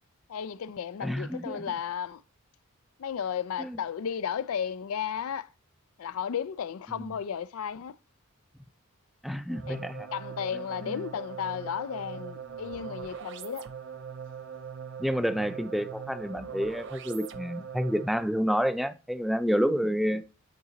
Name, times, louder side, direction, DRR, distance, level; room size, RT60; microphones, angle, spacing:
voice 1, 0.3-2.2 3.0-5.5 6.0-8.0 9.7-9.8 10.1-13.7, left 8 dB, 75° left, 0.4 m, -34 dB
voice 2, 1.0-1.6 3.6-3.7 7.0-7.1 9.2-10.1 10.9-11.0 15.0-20.2, equal, ahead, 0.4 m, -29 dB
sound 1, 9.5-18.3, right 7 dB, 55° right, 0.5 m, -41 dB
8.0 x 3.8 x 3.9 m
head